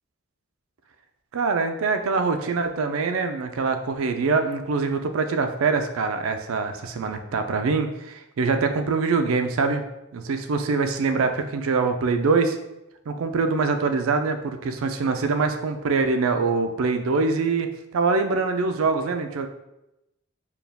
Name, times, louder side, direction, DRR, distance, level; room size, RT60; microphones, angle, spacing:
voice 1, 1.3-9.8 10.1-12.6 13.1-19.5, right 4 dB, 75° right, 7 dB, 0.4 m, -24 dB
4.5 x 2.3 x 3.4 m, 0.90 s
head